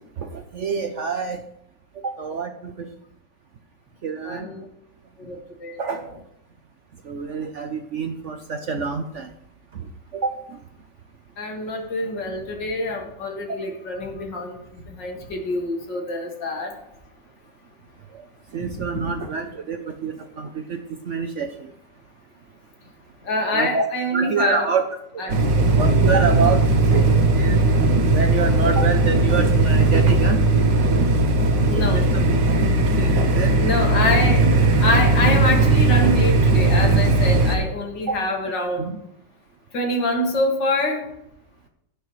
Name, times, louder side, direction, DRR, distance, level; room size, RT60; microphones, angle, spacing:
voice 1, 0.2-1.4 2.0-2.5 2.8-2.9 4.0-4.5 5.8-6.0 7.1-9.3 10.1-10.4 18.5-20.8 21.1-21.5 23.5-23.8 24.1-24.9 25.7-27.6 28.1-30.4 31.7-32.3 33.0-33.6 38.1-38.2 38.8-39.0, right 5 dB, 60° right, 7 dB, 0.8 m, -26 dB
voice 2, 4.2-4.6 5.3-5.4 5.6-5.8 11.4-14.6 15.0-16.7 23.3-24.7 25.2-25.4 31.7-32.1 33.5-34.5 34.8-38.8 39.7-41.0, left 1 dB, 85° left, 2 dB, 2.6 m, -25 dB
sound 1, 25.3-37.6, right 2 dB, 80° right, 1.8 m, -18 dB
17.0 x 6.6 x 3.1 m, 0.79 s
omnidirectional pair, 1.9 m